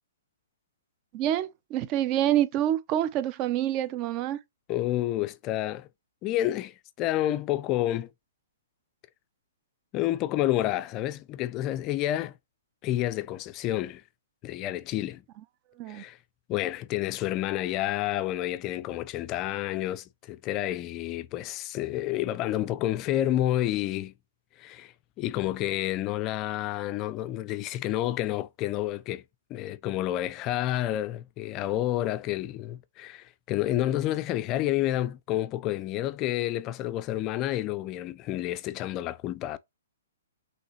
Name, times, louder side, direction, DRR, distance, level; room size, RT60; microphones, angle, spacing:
voice 1, 1.1-4.4 15.8-16.0, right 12 dB, 30° right, 0.5 m, -27 dB
voice 2, 4.7-5.9 6.2-8.1 9.9-12.4 12.8-14.0 14.4-15.2 15.9-16.2 16.5-24.1 24.6-29.2 29.5-39.6, left 14 dB, 30° left, 0.4 m, -29 dB
5.3 x 3.1 x 3.0 m
hypercardioid pair, 135°, 0 cm